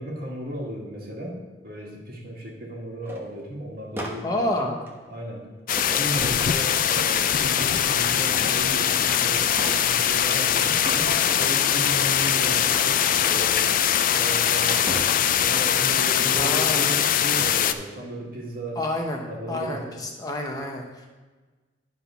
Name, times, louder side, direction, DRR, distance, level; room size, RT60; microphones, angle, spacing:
voice 1, 0.0-4.7 5.1-5.5 5.8-13.6 14.1-18.8 19.3-19.9, right 1 dB, 50° right, -1 dB, 1.8 m, -35 dB
sound 1, 3.0-3.3 4.0-5.1 5.8-6.9 7.6-9.1 9.4-10.5 10.8-12.2 12.6-14.5 14.9-15.9 17.0-17.3 17.8-18.1, right 1 dB, 10° right, 1.0 m, -38 dB
voice 2, 4.2-4.8 16.3-17.0 18.8-21.1, left 1 dB, 20° left, 1 dB, 0.8 m, -29 dB
sound 2, 5.7-17.7, left 9 dB, 45° left, 0.4 m, -22 dB
10.0 x 4.0 x 5.6 m, 1.3 s
head